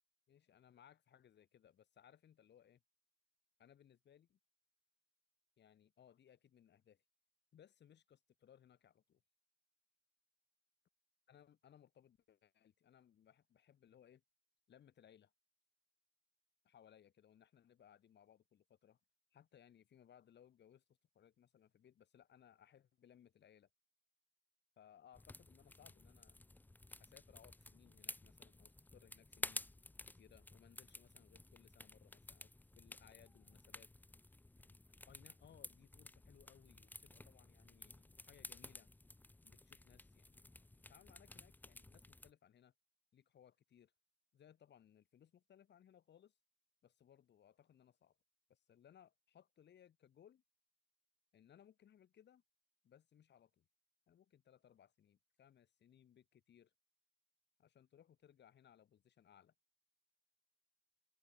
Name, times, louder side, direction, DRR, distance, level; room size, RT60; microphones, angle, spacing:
voice 1, 0.3-2.8 3.6-4.4 5.6-7.0 7.5-9.2 11.3-14.2 14.7-15.3 16.6-19.0 19.3-23.7 24.8-26.5 27.0-29.6 30.1-33.9 34.6-34.8 35.1-38.9 39.4-42.7 43.1-43.9 44.3-46.3 46.8-48.2 48.5-50.4 51.3-52.4 52.8-53.7 54.1-56.7 57.6-59.5, left 9 dB, 60° left, 3.3 m, -66 dB
sound 1, 25.1-42.3, left 2 dB, 10° left, 0.6 m, -53 dB
open air
cardioid pair, 90°, 20 cm